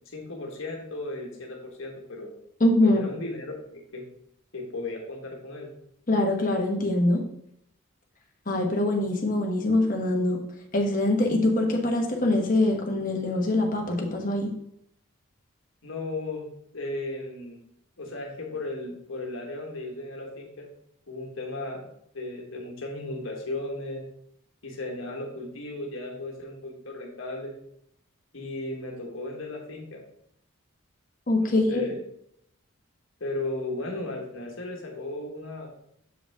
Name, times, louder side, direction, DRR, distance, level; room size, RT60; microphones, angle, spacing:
voice 1, 0.1-2.3 2.8-4.0 4.5-5.7 15.8-17.6 18.0-20.7 21.1-21.9 22.1-24.0 24.6-27.5 28.3-30.0 31.4-31.9 33.2-35.7, left 2 dB, 65° left, 0 dB, 1.4 m, -35 dB
voice 2, 2.6-3.0 6.1-7.3 8.5-10.4 10.7-14.5 31.3-31.8, left 1 dB, 40° left, 1 dB, 1.2 m, -23 dB
7.5 x 5.0 x 3.6 m, 0.73 s
head